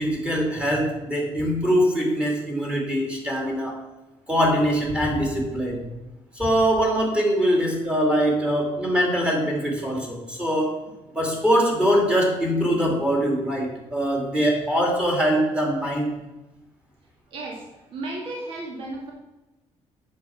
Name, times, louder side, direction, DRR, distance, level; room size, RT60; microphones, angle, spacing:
voice 1, 0.0-3.8 4.3-5.8 6.3-10.8 11.1-16.1, equal, 10° right, -1 dB, 2.6 m, -23 dB
voice 2, 17.3-17.6 17.9-19.1, right 2 dB, 50° right, -1 dB, 2.1 m, -33 dB
9.3 x 7.6 x 5.8 m, 1.0 s
cardioid pair, 165°, 12 cm